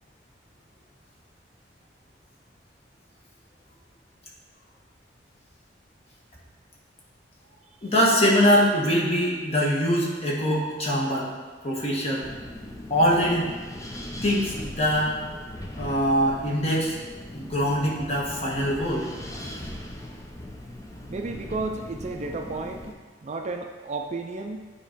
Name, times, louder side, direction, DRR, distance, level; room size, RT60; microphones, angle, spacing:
voice 1, 7.8-11.3 11.6-12.3 12.9-13.5 14.2-15.2 15.8-17.0 17.3-19.5, equal, 35° left, -4 dB, 1.3 m, -23 dB
Wind, 12.2-22.9, left 1 dB, 20° left, 0.6 m, -39 dB
voice 2, 21.1-24.7, right 3 dB, 40° right, 4 dB, 0.4 m, -33 dB
8.9 x 3.0 x 4.9 m, 1.4 s
head